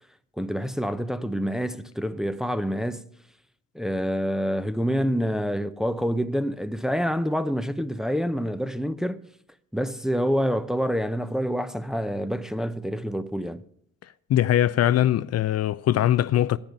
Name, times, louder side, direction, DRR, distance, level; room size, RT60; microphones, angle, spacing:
voice 1, 0.4-3.1 3.7-9.3 9.7-13.6, equal, ahead, 0.6 m, -27 dB
voice 2, 14.3-16.6, left 12 dB, 55° left, 0.5 m, -21 dB
10.5 x 9.6 x 8.6 m
cardioid pair, 90°, 30 cm